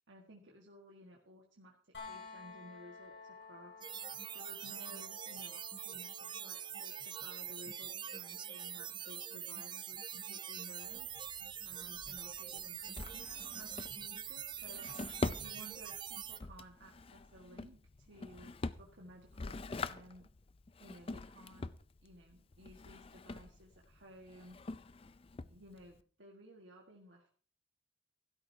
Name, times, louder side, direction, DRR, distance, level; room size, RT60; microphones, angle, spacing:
voice 1, 0.1-1.8 2.1-11.1 11.6-14.9 15.4-20.3 20.8-21.7 22.0-24.6 25.5-27.3, equal, 80° right, -1 dB, 1.7 m, -56 dB
sound 1, 1.9-13.8 15.7-15.8, left 4 dB, 65° left, 6.0 m, -56 dB
sound 2, 3.8-16.4, right 9 dB, 25° right, 0.4 m, -44 dB
Drawer open or close, 10.8-26.0, left 3 dB, 30° left, 0.4 m, -45 dB
16.0 x 12.5 x 2.8 m, 0.43 s
head